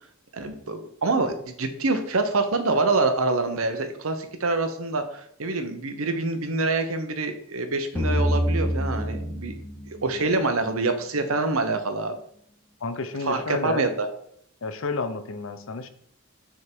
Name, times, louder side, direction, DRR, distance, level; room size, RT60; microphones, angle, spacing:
voice 1, 0.3-9.6 9.9-12.2 13.2-14.1, right 3 dB, 85° right, 8 dB, 0.9 m, -26 dB
sound 1, 8.0-10.9, equal, 10° left, 0.7 m, -27 dB
voice 2, 12.8-13.8 14.6-15.9, left 3 dB, 70° left, 9 dB, 0.7 m, -31 dB
6.4 x 3.7 x 4.6 m, 0.68 s
head